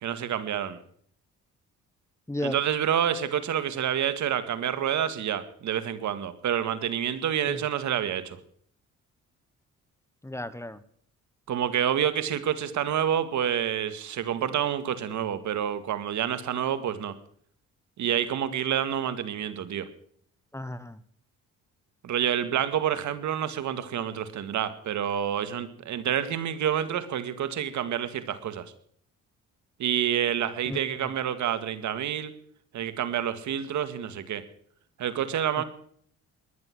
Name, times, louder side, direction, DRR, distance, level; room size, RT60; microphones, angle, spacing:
voice 1, 0.0-0.8 2.4-8.4 11.5-17.1 18.0-19.9 22.0-28.7 29.8-32.3 32.7-34.4 35.0-35.6, right 9 dB, 70° right, 12 dB, 2.0 m, -28 dB
voice 2, 2.3-2.6 7.5-7.6 10.2-10.8 20.5-21.0 30.7-31.1 35.6-35.7, left 1 dB, 10° left, 15 dB, 1.0 m, -34 dB
20.0 x 11.0 x 6.2 m, 0.62 s
cardioid pair, 90°, 30 cm